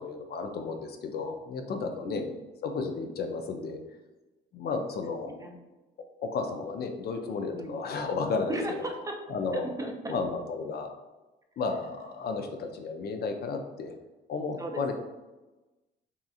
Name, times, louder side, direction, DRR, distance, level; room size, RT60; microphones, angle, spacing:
voice 1, 0.0-2.2 2.6-3.8 4.5-5.3 6.2-8.6 9.3-9.7 10.1-10.9 11.6-13.9 14.3-14.9, left 4 dB, 55° left, 5 dB, 0.4 m, -33 dB
voice 2, 1.8-2.3 5.1-5.6 7.5-7.7 8.5-9.2 9.5-10.2 14.6-14.9, right 1 dB, 15° right, 2 dB, 0.4 m, -36 dB
2.8 x 2.5 x 2.3 m, 1.1 s
cardioid pair, 90°, 20 cm